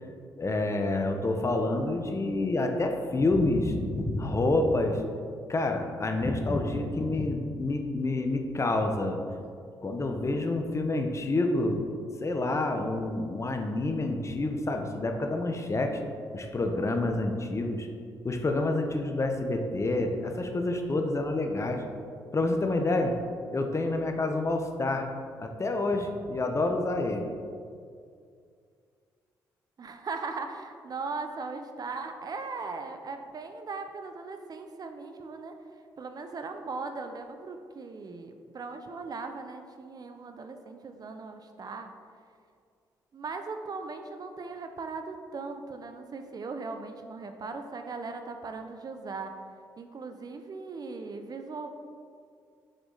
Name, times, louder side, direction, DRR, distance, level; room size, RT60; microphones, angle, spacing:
voice 1, 0.4-5.0 5.5-9.2 9.8-11.8 12.2-16.0 16.3-17.9 18.2-21.8 22.3-23.1 23.5-25.1 25.4-27.3, left 2 dB, 30° left, 4 dB, 0.8 m, -28 dB
voice 2, 29.8-35.5 36.0-41.9 43.1-49.3 49.8-51.7, right 4 dB, 45° right, 6 dB, 0.6 m, -38 dB
6.4 x 4.9 x 3.9 m, 2.3 s
hypercardioid pair, 50°, 9 cm